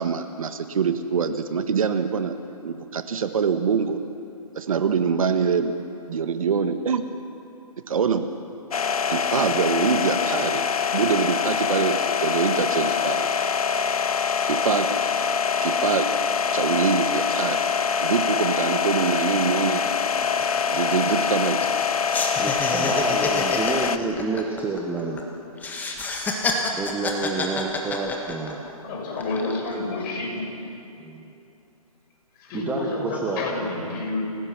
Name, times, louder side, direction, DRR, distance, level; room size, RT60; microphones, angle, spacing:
voice 1, 0.0-2.4 2.6-4.0 4.5-5.7 6.1-7.0 7.9-8.3 9.1-10.7 10.9-13.3 14.4-15.0 15.6-16.1 16.5-17.6 18.0-19.8 20.7-21.6, right 6 dB, 65° right, 8 dB, 1.5 m, -24 dB
sound 1, 8.7-24.0, left 6 dB, 70° left, 1.1 m, -24 dB
sound 2, 19.3-19.4 19.7-19.9 20.2-21.8 22.1-25.2 25.6-28.7 29.1-29.7, left 3 dB, 10° left, 1.7 m, -29 dB
voice 2, 22.4-25.2 26.8-28.6 31.0-31.3 32.5-33.4, right 3 dB, 10° right, -1 dB, 1.3 m, -29 dB
voice 3, 28.8-30.6 32.4-34.2, left 2 dB, 35° left, -1 dB, 6.0 m, -29 dB
28.5 x 17.0 x 6.1 m, 2.7 s
hypercardioid pair, 145°, 19 cm